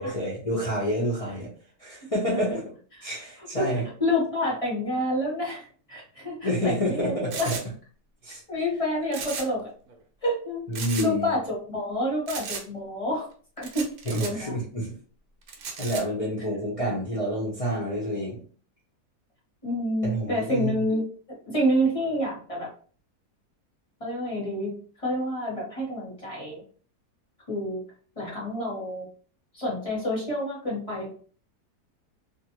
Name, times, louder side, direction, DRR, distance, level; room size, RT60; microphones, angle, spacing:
voice 1, 0.0-1.5 1.8-2.6 3.0-3.9 6.4-7.6 8.2-8.4 10.7-11.3 14.1-14.9 15.8-18.4 20.0-20.7, equal, 55° left, -6 dB, 0.4 m, -28 dB
voice 2, 3.5-7.5 8.5-9.7 10.2-10.6 11.0-13.3 13.6-13.9 14.2-14.6 19.6-21.0 21.5-22.7 24.0-26.6 27.5-27.8 28.2-29.1 29.5-31.1, equal, 25° left, -4 dB, 0.9 m, -28 dB
sound 1, 7.3-7.6 9.1-9.6 9.9-10.0 10.7-11.1 12.3-12.6 13.6-14.3 15.5-16.0, right 5 dB, 70° right, 1.0 m, -35 dB
2.6 x 2.5 x 2.9 m, 0.43 s
omnidirectional pair, 1.7 m